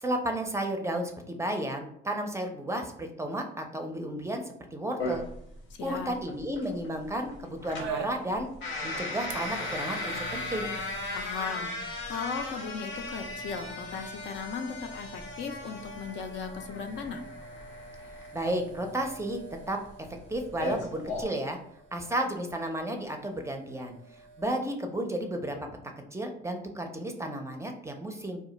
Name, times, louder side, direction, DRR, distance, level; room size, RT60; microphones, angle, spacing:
voice 1, 0.0-4.4 4.7-5.2 5.8-8.5 8.8-10.7 18.3-19.4 19.7-19.8 20.3-21.6 21.9-24.0 24.4-25.7 26.1-28.4, right 1 dB, 15° right, 4 dB, 0.4 m, -32 dB
sound 1, 5.0-21.2, left 2 dB, 80° left, 0.9 m, -38 dB
voice 2, 5.7-6.1 11.1-11.8 12.1-17.2, left 5 dB, 65° left, 5 dB, 0.4 m, -37 dB
sound 2, 7.8-24.5, right 4 dB, 70° right, 0.4 m, -46 dB
2.3 x 2.1 x 3.8 m, 0.69 s
cardioid pair, 90°, 20 cm